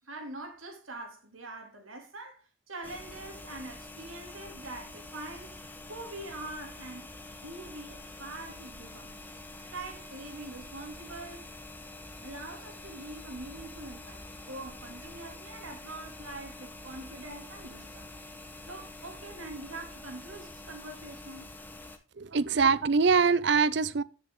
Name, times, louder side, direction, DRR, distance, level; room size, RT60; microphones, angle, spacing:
voice 1, 0.0-5.5 5.8-7.1 7.4-11.5 12.2-18.1 18.7-21.5 22.3-22.8, right 2 dB, 85° right, 2.8 m, -44 dB
sound 1, 2.8-22.0, left 2 dB, 10° left, 1.0 m, -46 dB
voice 2, 22.2-24.0, right 5 dB, 55° right, 0.5 m, -23 dB
13.5 x 6.3 x 3.7 m
head